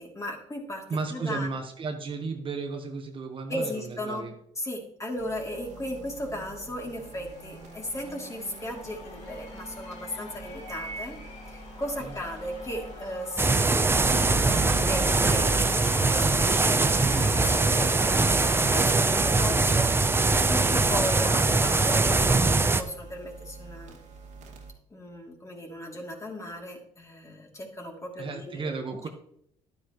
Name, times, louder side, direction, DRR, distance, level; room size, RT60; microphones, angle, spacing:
voice 1, 0.0-1.5 3.5-4.3 4.5-11.2 11.5-24.0 24.9-28.7, left 1 dB, 20° left, 0 dB, 3.0 m, -36 dB
voice 2, 0.9-4.3 12.0-12.1 28.2-29.1, right 4 dB, 40° right, 4 dB, 1.3 m, -34 dB
sound 1, 5.2-24.7, right 3 dB, 65° right, 2.2 m, -41 dB
Cheering / Applause / Crowd, 6.5-21.3, left 4 dB, 60° left, 1.7 m, -45 dB
sound 2, 13.4-22.8, right 3 dB, 15° right, 0.7 m, -22 dB
11.5 x 9.3 x 3.1 m, 0.71 s
supercardioid pair, 80°, 13 cm